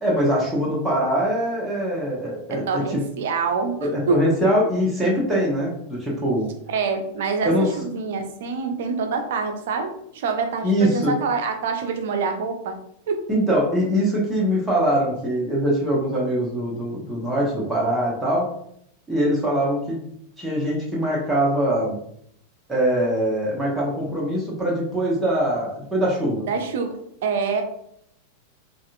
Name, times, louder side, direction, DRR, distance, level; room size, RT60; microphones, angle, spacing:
voice 1, 0.0-3.0 3.8-6.5 7.4-7.8 10.6-11.1 13.3-18.5 19.1-20.0 20.4-22.0 22.7-26.4, equal, 5° right, -5 dB, 1.0 m, -22 dB
voice 2, 2.5-4.3 6.7-12.8 13.1-13.2 26.5-27.6, right 4 dB, 55° right, 5 dB, 0.6 m, -26 dB
4.0 x 2.5 x 2.5 m, 0.70 s
figure-of-eight pair, 90°, 0 cm